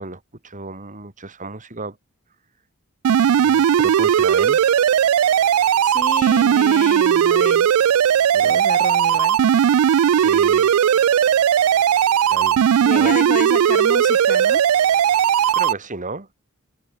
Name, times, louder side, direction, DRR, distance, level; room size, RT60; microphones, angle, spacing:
voice 1, 0.0-2.0 3.4-4.6 8.3-8.6 10.1-10.7 12.3-12.6 12.9-13.2 15.5-16.3, right 3 dB, 35° right, 2.9 m, -33 dB
sound 1, 3.0-15.7, right 8 dB, 80° right, 0.4 m, -17 dB
voice 2, 5.8-7.7 8.4-9.4 12.8-14.6, left 3 dB, 40° left, 6.2 m, -30 dB
head